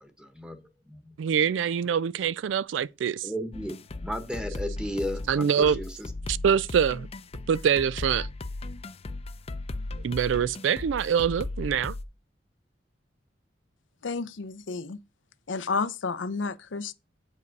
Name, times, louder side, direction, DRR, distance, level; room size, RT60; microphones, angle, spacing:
voice 1, 0.0-0.6 0.9-1.1 3.2-3.7 4.0-6.0, equal, 5° right, 1.2 m, -34 dB
voice 2, 1.2-3.3 5.3-5.8 6.3-7.1 7.5-8.3 10.0-11.9, right 7 dB, 80° right, 0.3 m, -25 dB
sound 1, 3.5-12.0, left 2 dB, 35° left, 0.5 m, -36 dB
voice 3, 14.0-15.0 15.5-16.9, left 4 dB, 85° left, 0.6 m, -31 dB
8.1 x 5.4 x 5.2 m
head